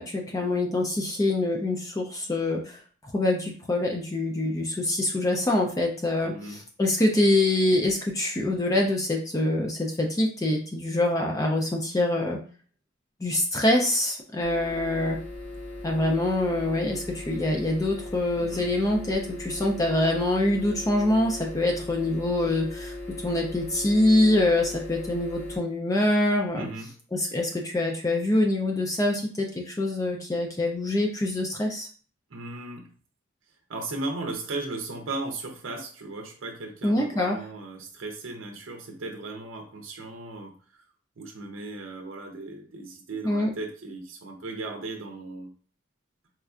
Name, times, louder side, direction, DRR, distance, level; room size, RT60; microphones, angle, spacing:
voice 1, 0.0-2.8 3.1-12.4 13.2-15.2 15.8-26.7 27.1-31.9 36.8-37.4 43.2-43.5, left 1 dB, 15° left, 1 dB, 0.4 m, -25 dB
voice 2, 6.2-6.6 18.4-18.7 26.5-26.9 32.3-32.9 33.7-40.8 41.2-45.5, right 2 dB, 80° right, 2 dB, 0.6 m, -36 dB
sound 1, 14.4-25.6, left 1 dB, 70° left, 1.2 m, -38 dB
4.2 x 2.4 x 2.4 m, 0.42 s
head